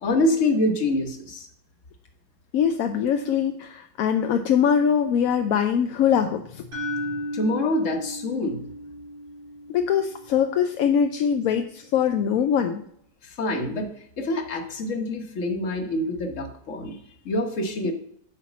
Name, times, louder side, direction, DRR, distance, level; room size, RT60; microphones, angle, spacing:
voice 1, 0.0-1.5 7.3-8.6 13.2-17.0 17.2-17.9, left 1 dB, 50° left, 5 dB, 1.5 m, -26 dB
voice 2, 2.5-6.6 9.7-12.8, left 8 dB, 65° left, 6 dB, 0.9 m, -22 dB
sound 1, 6.7-10.8, equal, 75° right, 3.6 m, -35 dB
8.2 x 4.5 x 7.2 m, 0.69 s
omnidirectional pair, 1.8 m